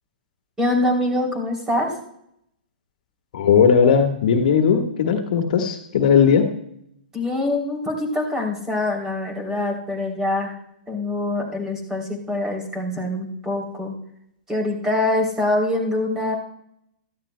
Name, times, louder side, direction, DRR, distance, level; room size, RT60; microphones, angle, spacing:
voice 1, 0.6-1.9 7.1-10.6 10.9-13.9 14.5-16.3, left 1 dB, 10° right, 1 dB, 3.2 m, -24 dB
voice 2, 3.3-6.5, left 6 dB, 60° left, 4 dB, 1.5 m, -17 dB
17.0 x 13.5 x 2.2 m, 0.75 s
hypercardioid pair, 125°, 5 cm